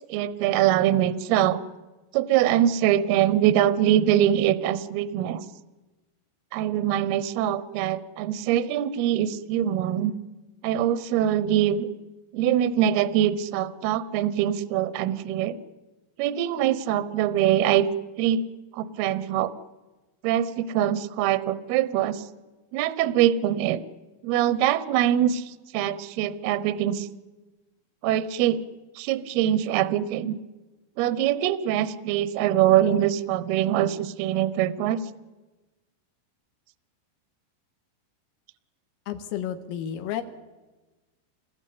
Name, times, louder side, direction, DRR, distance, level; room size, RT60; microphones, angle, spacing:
voice 1, 0.1-1.6 2.1-5.4 6.5-10.1 10.6-11.9 12.3-15.6 16.2-17.9 18.2-18.4 18.7-19.5 20.2-22.2 22.7-23.8 24.2-25.4 25.7-27.1 28.0-28.6 29.0-30.3 31.0-35.0, right 11 dB, 85° right, 14 dB, 2.2 m, -23 dB
voice 2, 39.1-40.2, left 10 dB, 80° left, 7 dB, 4.2 m, -31 dB
27.0 x 21.0 x 8.5 m, 1.2 s
omnidirectional pair, 5.9 m